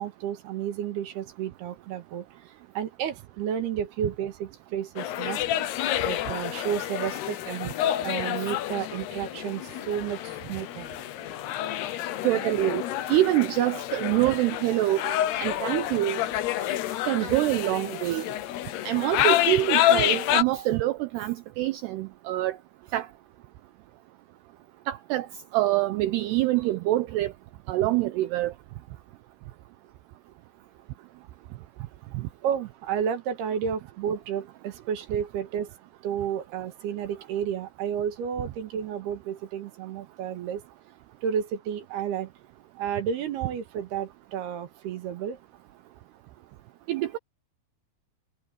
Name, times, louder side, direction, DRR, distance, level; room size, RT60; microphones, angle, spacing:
voice 1, 0.0-2.2 2.7-5.4 6.0-7.7 8.0-10.9 32.4-35.7 36.0-40.6 41.2-42.3 42.7-45.4, right 8 dB, 65° right, 3.2 m, -31 dB
sound 1, 5.0-20.4, left 12 dB, 70° left, 2.8 m, -28 dB
voice 2, 12.2-12.8 13.1-15.1 15.4-16.2 17.1-18.3 18.8-22.6 22.9-23.1 24.9-25.3 25.5-27.3 27.7-28.5 32.1-32.3 46.9-47.2, right 16 dB, 85° right, 2.4 m, -25 dB
omnidirectional pair, 5.6 m